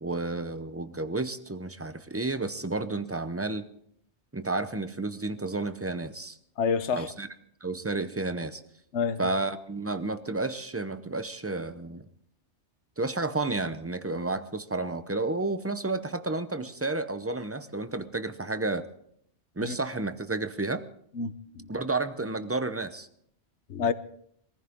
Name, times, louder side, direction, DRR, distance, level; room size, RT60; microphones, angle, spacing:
voice 1, 0.0-3.6 4.3-6.4 7.0-7.3 7.6-8.6 9.2-12.1 13.0-18.8 19.6-20.8 21.7-23.1, right 2 dB, 15° right, 0.6 m, -31 dB
voice 2, 6.6-7.1 8.9-9.3 19.6-19.8 21.1-21.7 23.7-23.9, left 6 dB, 80° left, 1.1 m, -28 dB
22.5 x 15.0 x 3.6 m
omnidirectional pair, 1.2 m